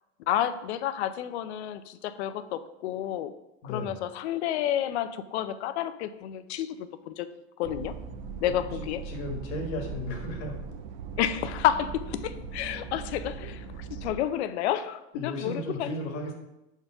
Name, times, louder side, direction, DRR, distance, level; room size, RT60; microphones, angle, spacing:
voice 1, 0.3-3.3 3.6-7.3 7.6-7.9 8.4-9.0 11.2-15.9, left 11 dB, 80° left, 12 dB, 0.6 m, -30 dB
voice 2, 3.6-4.0 8.5-8.6 9.1-10.6 15.1-16.3, left 1 dB, 40° left, 2 dB, 1.4 m, -35 dB
sound 1, 7.6-14.2, right 5 dB, 40° right, 0.5 m, -39 dB
5.1 x 4.5 x 5.8 m, 0.93 s
supercardioid pair, 170°, 32 cm